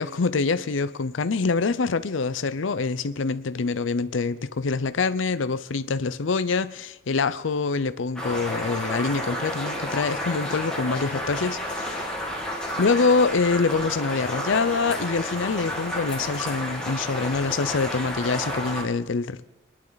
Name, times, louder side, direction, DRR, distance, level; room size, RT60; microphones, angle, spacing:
voice 1, 0.0-12.2 12.8-19.4, left 4 dB, 80° left, 0.6 m, -25 dB
sound 1, 8.2-18.8, equal, 5° left, 2.2 m, -31 dB
23.5 x 11.0 x 4.0 m
head